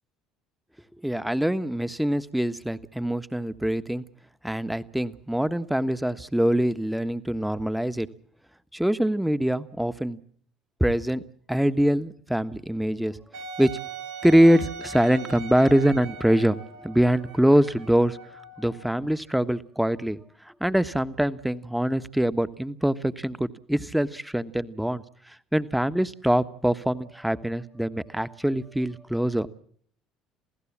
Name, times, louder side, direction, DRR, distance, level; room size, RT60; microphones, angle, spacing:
voice 1, 1.0-4.0 4.4-8.1 8.7-10.2 10.8-11.2 11.5-18.2 18.6-20.2 20.4-29.5, equal, 5° right, 13 dB, 1.3 m, -24 dB
Wind instrument woodwind instrument, 13.3-19.0, right 5 dB, 80° right, 3.6 m, -40 dB
28.0 x 16.5 x 7.4 m, 0.63 s
hypercardioid pair, 65°, 0 cm